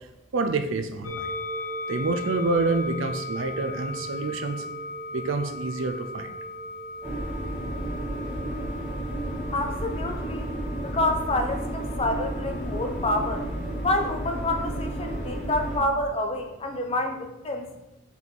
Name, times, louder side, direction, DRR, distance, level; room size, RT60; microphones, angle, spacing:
voice 1, 0.3-1.3 1.9-4.6 5.1-6.3, right 3 dB, 60° right, 7 dB, 0.5 m, -27 dB
sound 1, 1.0-15.3, left 1 dB, 70° left, 0.9 m, -38 dB
sound 2, 7.0-15.8, right 1 dB, 10° right, 1.5 m, -32 dB
voice 2, 9.5-10.5 10.8-13.5 13.8-17.7, left 2 dB, 25° left, 4 dB, 0.6 m, -28 dB
5.5 x 4.6 x 4.0 m, 0.93 s
head